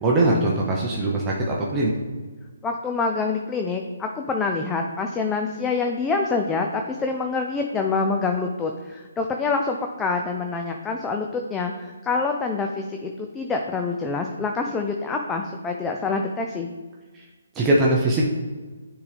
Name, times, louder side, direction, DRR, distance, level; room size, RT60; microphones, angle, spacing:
voice 1, 0.0-1.9 17.1-17.2 17.5-18.3, right 2 dB, 15° right, -3 dB, 0.8 m, -21 dB
voice 2, 2.6-16.7, left 4 dB, 10° left, 3 dB, 0.4 m, -26 dB
9.6 x 3.8 x 3.4 m, 1.3 s
figure-of-eight pair, 140°, 0 cm